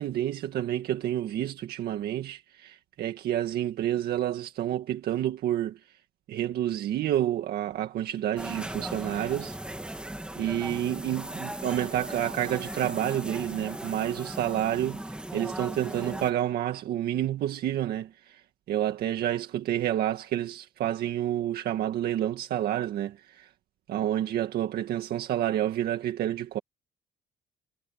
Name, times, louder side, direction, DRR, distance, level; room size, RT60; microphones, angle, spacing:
voice 1, 0.0-6.0 6.3-9.6 10.4-23.5 23.9-26.6, right 12 dB, 65° right, 1.8 m, -29 dB
sound 1, 8.4-16.3, right 1 dB, 5° right, 2.5 m, -37 dB
cardioid pair, 110°, 17 cm